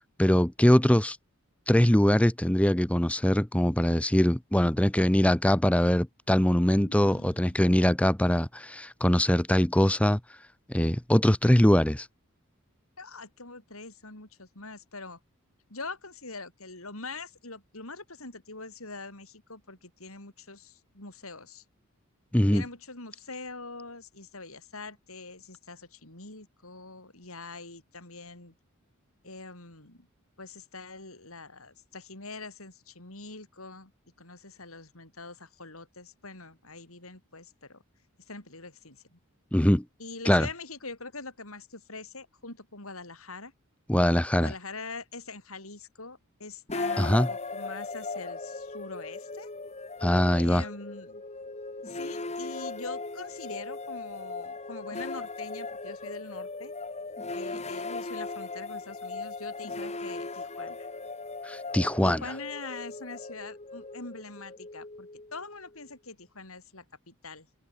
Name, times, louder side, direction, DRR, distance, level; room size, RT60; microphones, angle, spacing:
voice 1, 0.2-1.2 1.7-10.2 10.7-12.1 22.3-22.6 39.5-39.8 40.3-40.5 43.9-44.5 47.0-47.3 50.0-50.6 61.4-62.2, equal, 5° left, 0.7 m, -22 dB
voice 2, 6.7-7.7 13.0-15.2 15.7-21.6 22.5-28.5 29.2-30.1 30.4-33.9 34.2-37.8 38.3-39.2 40.0-43.5 44.4-49.5 50.4-51.2 51.8-56.7 57.3-60.9 62.0-67.5, left 3 dB, 75° left, 7.8 m, -43 dB
sound 1, 46.7-65.8, left 3 dB, 30° left, 2.5 m, -38 dB
open air
head